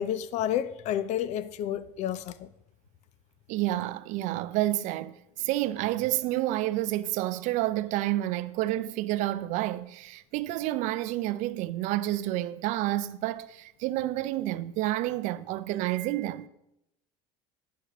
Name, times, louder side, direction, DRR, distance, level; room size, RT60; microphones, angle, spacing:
voice 1, 0.0-2.3, left 10 dB, 60° left, 0.5 m, -30 dB
voice 2, 3.5-5.1 5.4-16.5, right 15 dB, 65° right, 0.4 m, -29 dB
9.2 x 6.1 x 3.4 m
supercardioid pair, 100°, 14 cm